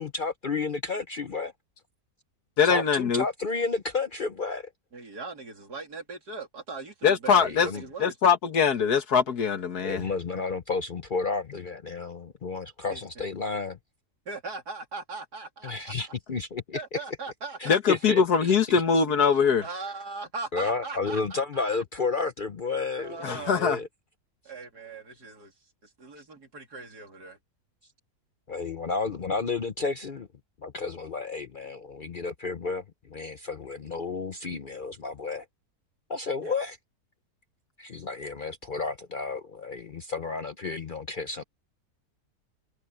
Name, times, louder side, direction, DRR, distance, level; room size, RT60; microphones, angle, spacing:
voice 1, 0.0-1.5 2.6-4.7 7.4-7.8 9.8-13.8 15.6-17.0 17.6-18.5 20.5-23.9 28.5-30.3 30.6-35.5 36.1-36.8 37.8-41.4, left 4 dB, 50° left, 0.6 m, -32 dB
voice 2, 2.6-3.2 7.0-7.7 8.0-10.0 17.7-19.6 23.2-23.8, left 6 dB, 75° left, 2.1 m, -22 dB
voice 3, 4.9-8.2 12.9-13.2 14.3-15.9 16.7-17.8 19.6-21.6 23.0-23.6 24.5-25.5 25.8-27.4 36.4-36.5, right 3 dB, 85° right, 3.9 m, -39 dB
omnidirectional pair, 1.6 m